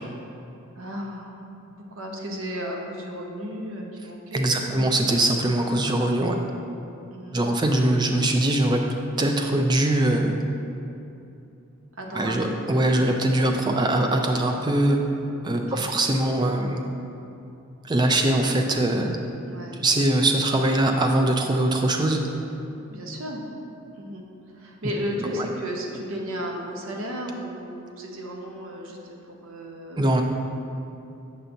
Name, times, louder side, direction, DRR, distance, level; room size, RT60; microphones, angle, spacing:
voice 1, 0.8-1.4 1.9-4.9 6.0-6.3 7.1-7.5 12.0-12.5 15.5-15.9 19.4-19.8 22.9-23.4 23.9-24.2 24.5-29.0 29.3-30.2, equal, 65° right, 0 dB, 0.7 m, -34 dB
voice 2, 4.3-6.3 7.3-8.8 9.2-10.4 12.1-15.0 15.4-16.8 17.8-19.2 19.8-22.2 25.3-25.5 30.0-30.2, right 1 dB, 20° right, 3 dB, 0.3 m, -22 dB
6.7 x 5.7 x 2.6 m, 2.8 s
head